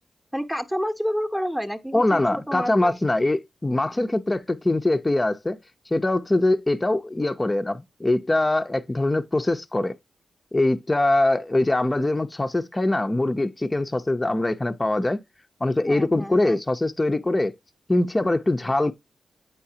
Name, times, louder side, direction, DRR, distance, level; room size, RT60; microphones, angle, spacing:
voice 1, 0.3-2.9 15.8-16.6, equal, 5° right, 0.9 m, -29 dB
voice 2, 1.9-5.6 5.9-10.0 10.5-15.2 15.6-17.5 17.9-18.9, left 2 dB, 25° left, 0.6 m, -23 dB
8.2 x 4.7 x 2.7 m
cardioid pair, 50°, 0 cm